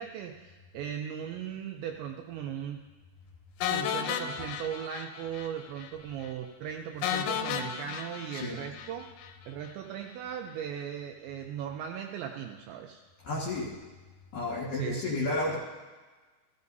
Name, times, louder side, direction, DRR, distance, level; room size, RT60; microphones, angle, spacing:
voice 1, 0.0-2.8 3.6-9.1 9.5-13.0 14.7-15.2, right 9 dB, 85° right, 3 dB, 2.6 m, -38 dB
sound 1, 3.6-5.5 5.8-5.9 6.2-6.3 7.0-9.3, left 9 dB, 80° left, 2.8 m, -33 dB
voice 2, 8.3-8.6 13.2-13.7 14.3-15.6, left 2 dB, 60° left, -5 dB, 2.6 m, -32 dB
15.0 x 15.0 x 2.7 m, 1.3 s
omnidirectional pair, 5.8 m